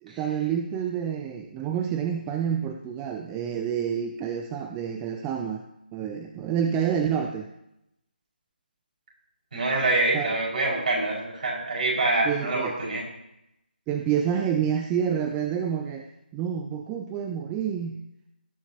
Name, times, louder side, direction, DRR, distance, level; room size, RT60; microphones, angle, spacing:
voice 1, 0.0-5.6 5.9-7.5 10.1-10.3 12.2-12.7 13.9-16.1 16.3-18.0, right 8 dB, 10° right, 5 dB, 0.4 m, -28 dB
voice 2, 9.5-13.0, right 2 dB, 50° right, -3 dB, 5.4 m, -25 dB
18.0 x 9.8 x 2.9 m, 0.84 s
figure-of-eight pair, 155°, 6 cm